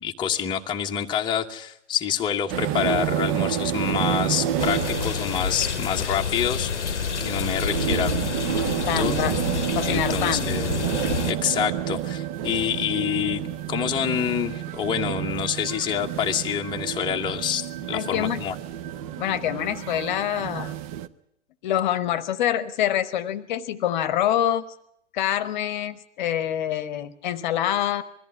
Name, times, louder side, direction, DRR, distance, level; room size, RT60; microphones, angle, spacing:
voice 1, 0.0-8.1 9.0-9.2 9.8-10.7 11.3-13.4 13.7-18.5, left 9 dB, 15° left, 2 dB, 1.1 m, -27 dB
sound 1, 2.5-21.1, right 10 dB, 30° right, 0.8 m, -29 dB
sound 2, 4.6-11.3, left 6 dB, 70° left, 0.9 m, -28 dB
voice 2, 8.9-9.3 9.7-10.6 17.9-18.4 19.2-20.7 21.6-24.6 25.1-28.0, left 11 dB, 40° left, 14 dB, 1.1 m, -26 dB
21.5 x 14.0 x 9.5 m, 0.75 s
figure-of-eight pair, 110°, 36 cm